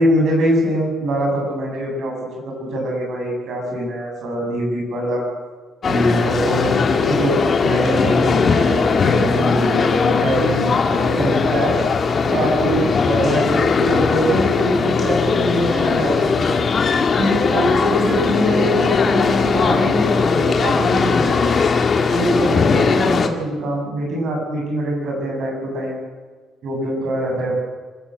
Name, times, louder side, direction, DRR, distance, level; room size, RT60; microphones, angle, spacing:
voice 1, 0.0-5.2 5.9-7.4 7.6-11.8 12.2-16.5 17.2-21.5 22.1-26.0 26.6-27.6, equal, 55° right, 0 dB, 7.9 m, -23 dB
sound 1, 5.8-23.3, left 5 dB, 30° left, 1.6 m, -19 dB
26.0 x 14.5 x 7.7 m, 1.4 s
cardioid pair, 170°, 0 cm